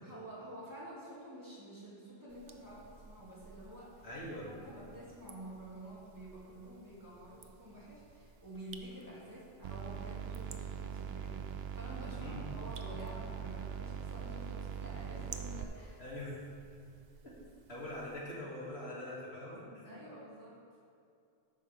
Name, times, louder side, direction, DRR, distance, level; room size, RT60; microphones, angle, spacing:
voice 1, 0.0-4.1 4.4-16.0 19.8-20.6, right 1 dB, 20° right, -7 dB, 2.5 m, -49 dB
sound 1, 2.3-18.2, right 5 dB, 50° right, 0.7 m, -57 dB
voice 2, 4.0-4.5 12.1-12.4 16.0-16.3 17.7-20.0, left 1 dB, 90° left, -6 dB, 2.7 m, -43 dB
sound 2, 9.6-15.6, right 8 dB, 80° right, 0.8 m, -41 dB
12.0 x 8.8 x 3.5 m, 2.5 s
omnidirectional pair, 1.0 m